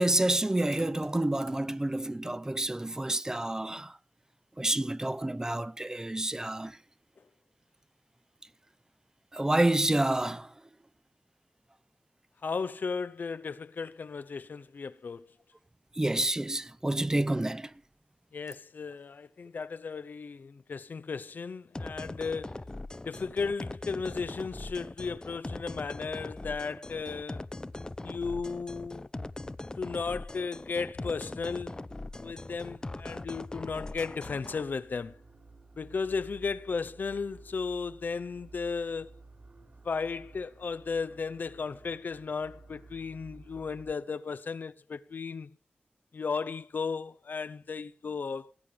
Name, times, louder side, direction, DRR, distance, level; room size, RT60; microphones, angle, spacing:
voice 1, 0.0-3.9 4.6-6.8 9.3-10.5 16.0-17.7, right 1 dB, 20° right, 0.6 m, -28 dB
voice 2, 12.4-15.3 18.3-22.6 23.0-27.4 28.0-29.1 29.8-31.8 32.2-35.2 35.8-39.1 39.8-45.5 46.1-48.5, left 5 dB, 70° left, 0.6 m, -35 dB
sound 1, 21.8-34.6, left 2 dB, 25° left, 0.6 m, -41 dB
sound 2, 32.0-43.9, right 3 dB, 50° right, 3.2 m, -54 dB
19.0 x 8.5 x 5.1 m
wide cardioid pair, 75°, 3 cm